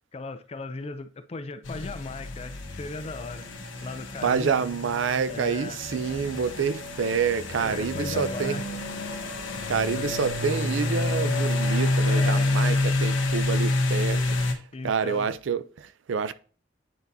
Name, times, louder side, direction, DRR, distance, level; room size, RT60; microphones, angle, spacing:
voice 1, 0.1-3.5 3.8-4.6 5.3-5.8 6.6-6.7 7.0-7.2 7.5-8.7 12.1-12.9 13.4-13.6 14.7-15.3, left 3 dB, 30° left, 0.4 m, -37 dB
sound 1, 1.6-14.5, left 2 dB, 75° left, 1.1 m, -28 dB
voice 2, 4.2-8.6 9.7-14.6 14.8-16.3, right 6 dB, 70° right, 0.4 m, -27 dB
9.2 x 4.0 x 2.7 m
head